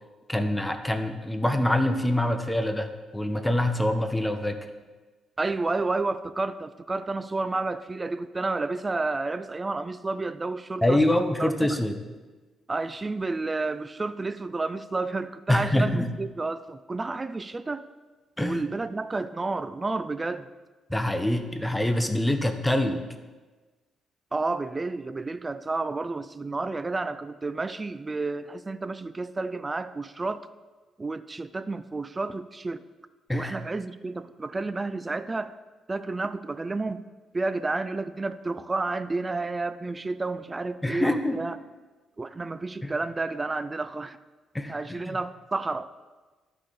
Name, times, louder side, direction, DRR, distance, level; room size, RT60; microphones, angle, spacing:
voice 1, 0.3-2.9 3.1-4.6 10.8-12.0 15.5-16.1 18.4-18.6 20.9-23.0 33.3-33.6 40.8-41.4 42.8-42.9 44.5-45.2, left 1 dB, 10° left, 7 dB, 0.8 m, -25 dB
voice 2, 5.4-11.0 11.4-11.8 12.7-17.9 18.4-20.5 24.3-30.5 31.0-32.8 33.3-35.5 35.9-37.0 37.3-41.6 42.2-44.2 44.7-45.9, right 3 dB, 25° right, 13 dB, 0.3 m, -31 dB
11.5 x 4.9 x 3.9 m, 1.3 s
cardioid pair, 90°, 0 cm